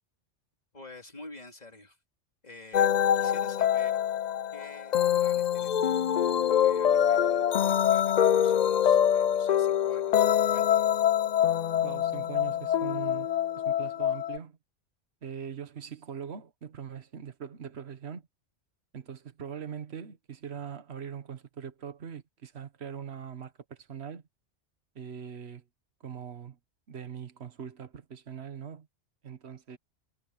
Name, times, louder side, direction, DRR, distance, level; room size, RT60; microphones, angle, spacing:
voice 1, 0.7-2.0 2.4-2.9 3.2-4.0 4.5-6.3 6.6-10.9, left 2 dB, 35° left, 2.9 m, -49 dB
sound 1, 2.7-14.4, left 9 dB, 55° left, 0.5 m, -25 dB
voice 2, 11.8-14.6 15.2-18.3 18.9-24.2 24.9-25.7 26.0-26.6 26.9-28.9 29.2-29.8, right 8 dB, 65° right, 1.5 m, -41 dB
omnidirectional pair, 1.2 m